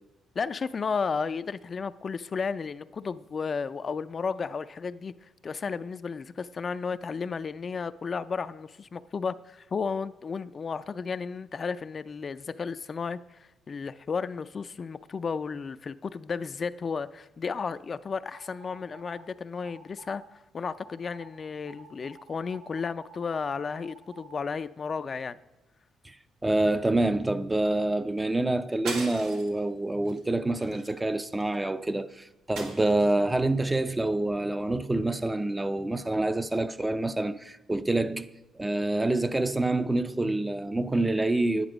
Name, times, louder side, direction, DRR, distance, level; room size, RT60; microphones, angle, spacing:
voice 1, 0.4-25.4, left 5 dB, 40° left, 0.4 m, -33 dB
sound 1, 18.3-19.3 19.6-20.3 20.7-21.3 21.7-24.4, right 4 dB, 65° right, 1.8 m, -51 dB
voice 2, 26.4-38.3 38.6-41.7, right 2 dB, 15° right, 0.5 m, -27 dB
sound 2, 28.8-29.6 30.0-30.2 30.6-31.5 32.5-33.3, right 3 dB, 90° right, 2.1 m, -39 dB
9.9 x 9.6 x 5.0 m
cardioid pair, 90°, 0 cm